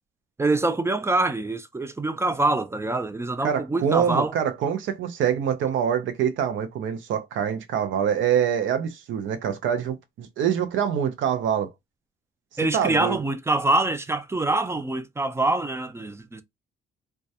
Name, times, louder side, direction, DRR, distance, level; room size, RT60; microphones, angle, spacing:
voice 1, 0.4-4.3 12.6-16.4, right 2 dB, 15° right, 0.3 m, -25 dB
voice 2, 3.4-11.7 12.7-13.2, right 8 dB, 75° right, 0.6 m, -25 dB
2.2 x 2.1 x 2.7 m
cardioid pair, 90°, 20 cm